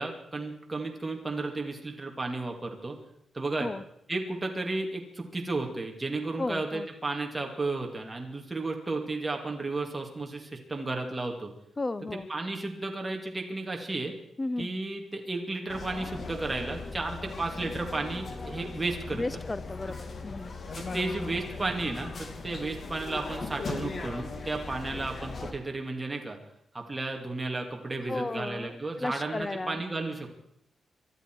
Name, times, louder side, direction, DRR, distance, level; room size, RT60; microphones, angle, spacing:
voice 1, 0.0-3.0 3.3-3.7 4.1-11.5 12.3-14.1 14.6-19.2 20.8-26.4 26.7-30.4, right 2 dB, 15° right, 2 dB, 2.3 m, -33 dB
voice 2, 6.4-6.9 11.8-12.3 14.4-14.7 19.1-20.5 28.1-29.8, left 2 dB, 20° left, 15 dB, 0.6 m, -34 dB
sound 1, 15.7-25.5, left 3 dB, 45° left, 1.8 m, -39 dB
24.0 x 12.0 x 4.6 m, 0.77 s
wide cardioid pair, 130°, 0 cm